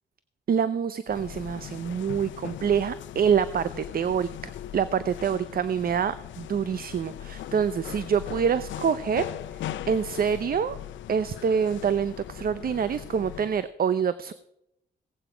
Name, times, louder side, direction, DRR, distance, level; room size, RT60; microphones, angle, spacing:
voice 1, 0.5-9.2 9.9-10.8 11.1-14.3, right 7 dB, 50° right, 14 dB, 0.6 m, -26 dB
sound 1, 1.1-13.7, left 11 dB, 85° left, 0.6 m, -39 dB
17.5 x 8.2 x 5.0 m, 0.81 s
cardioid pair, 70°, 19 cm